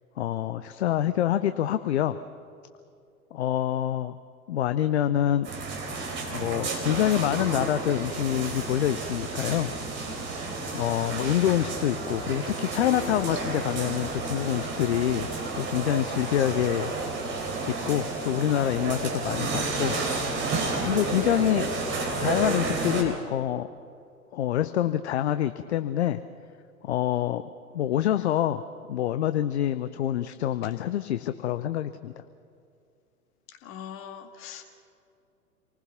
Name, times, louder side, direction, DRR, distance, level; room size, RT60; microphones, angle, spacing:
voice 1, 0.2-2.2 3.3-4.1 4.5-5.5 6.3-9.7 10.7-15.3 15.5-16.9 17.7-20.0 20.8-21.7 22.2-23.7 24.3-26.2 26.8-27.4 27.7-28.6 28.9-32.1, left 11 dB, 50° left, 11 dB, 0.7 m, -26 dB
sound 1, 5.4-23.0, right 3 dB, 25° right, 3.9 m, -31 dB
voice 2, 33.6-34.6, left 8 dB, 30° left, 6 dB, 2.0 m, -41 dB
27.5 x 19.5 x 5.9 m, 2.5 s
figure-of-eight pair, 100°, 44 cm